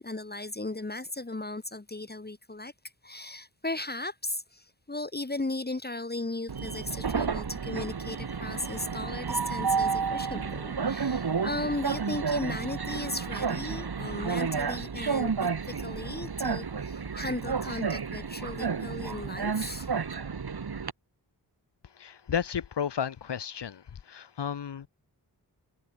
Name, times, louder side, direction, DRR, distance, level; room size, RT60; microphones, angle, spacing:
voice 1, 0.0-2.7 3.0-20.0, left 2 dB, 25° left, 2.1 m, -36 dB
Train, 6.5-20.9, right 5 dB, 60° right, 4.2 m, -31 dB
voice 2, 21.9-24.9, left 8 dB, 75° left, 1.6 m, -33 dB
cardioid pair, 60°, 42 cm